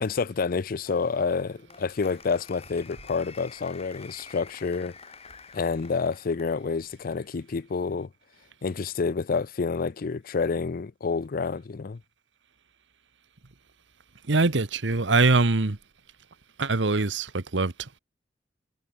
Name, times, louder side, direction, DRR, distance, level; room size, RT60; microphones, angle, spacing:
voice 1, 0.0-4.9 5.5-8.1 8.6-12.0, left 4 dB, 50° left, 0.5 m, -28 dB
Applause, 0.8-6.6, left 5 dB, 35° left, 7.5 m, -49 dB
voice 2, 14.3-15.8 16.6-18.0, right 3 dB, 75° right, 1.2 m, -23 dB
head